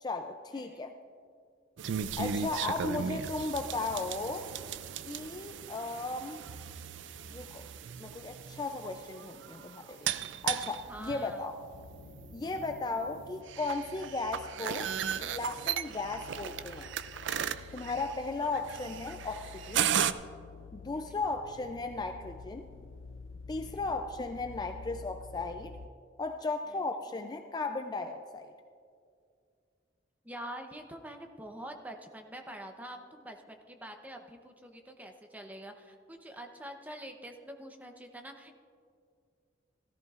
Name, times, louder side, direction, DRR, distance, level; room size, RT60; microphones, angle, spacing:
voice 1, 0.0-0.9 2.2-4.5 5.0-6.4 7.3-7.6 8.0-10.1 10.4-11.5 12.3-14.9 15.2-16.9 17.7-19.9 20.7-22.7 23.5-25.7 26.2-28.5, left 3 dB, 20° left, 6 dB, 0.4 m, -36 dB
sound 1, 1.8-20.1, right 8 dB, 70° right, 0.4 m, -36 dB
voice 2, 10.9-11.5 12.4-12.7 20.9-21.2 23.6-23.8 30.2-38.6, right 1 dB, 10° right, 4 dB, 0.7 m, -46 dB
sound 2, 11.7-25.9, left 4 dB, 90° left, 0.4 m, -50 dB
16.5 x 14.0 x 2.4 m, 2.3 s
head